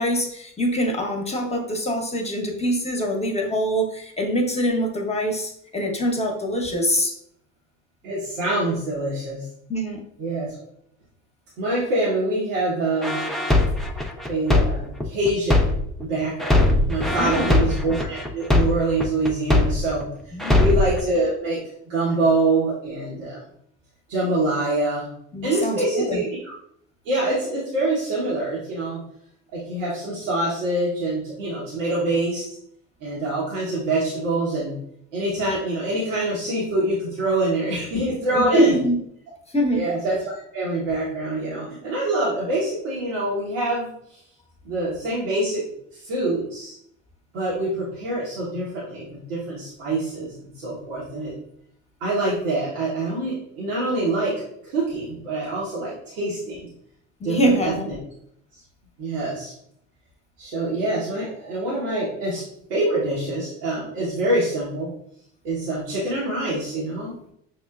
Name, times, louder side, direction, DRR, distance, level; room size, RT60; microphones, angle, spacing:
voice 1, 0.0-7.1 9.7-10.0 17.1-17.6 20.3-20.6 25.3-26.2 38.3-39.0 39.5-39.8 57.2-57.9, equal, 15° left, 2 dB, 0.9 m, -24 dB
voice 2, 8.0-9.4 10.2-10.5 11.6-13.2 14.3-15.7 16.0-21.6 21.9-23.4 24.1-25.1 25.4-26.5 27.0-29.0 29.5-32.4 33.0-34.8 35.1-38.7 39.7-44.2 44.6-45.6 45.9-46.7 47.3-51.3 52.0-54.3 54.6-56.7 57.2-58.0 58.5-58.6 59.0-59.5 60.4-62.4 62.7-64.9 65.4-67.2, right 2 dB, 90° right, -7 dB, 1.2 m, -25 dB
sound 1, 13.0-16.0 16.4-20.0 20.4-21.0, left 2 dB, ahead, 0.5 m, -20 dB
6.2 x 2.1 x 2.4 m, 0.71 s
hypercardioid pair, 70°, 38 cm